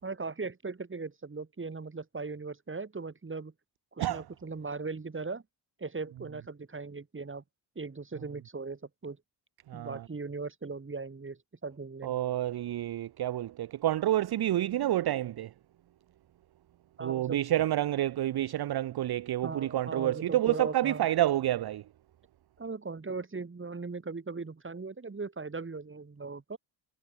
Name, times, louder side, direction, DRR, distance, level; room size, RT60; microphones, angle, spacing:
voice 1, 0.0-3.5 3.9-5.4 5.8-7.4 7.7-9.2 9.7-12.1 17.0-17.4 19.4-21.1 22.6-26.6, right 4 dB, 25° right, 3.0 m, -38 dB
voice 2, 9.7-10.0 12.0-15.5 17.0-21.8, right 13 dB, 55° right, 0.6 m, -29 dB
wide cardioid pair, 120°, 47 cm